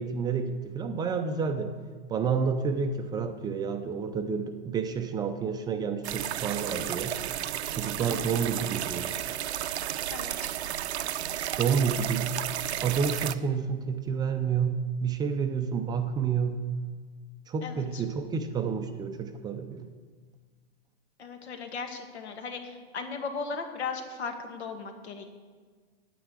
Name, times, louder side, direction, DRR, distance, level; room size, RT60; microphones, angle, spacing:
voice 1, 0.0-1.8 2.1-7.2 7.8-9.1 11.6-12.4 12.6-16.7 17.5-19.9, right 6 dB, 10° right, 6 dB, 0.4 m, -29 dB
sound 1, 6.0-13.4, right 11 dB, 80° right, 0.7 m, -33 dB
voice 2, 10.1-10.5 17.6-18.0 21.2-25.3, left 5 dB, 80° left, 5 dB, 2.2 m, -37 dB
9.8 x 9.3 x 8.1 m, 1.5 s
hypercardioid pair, 140°, 33 cm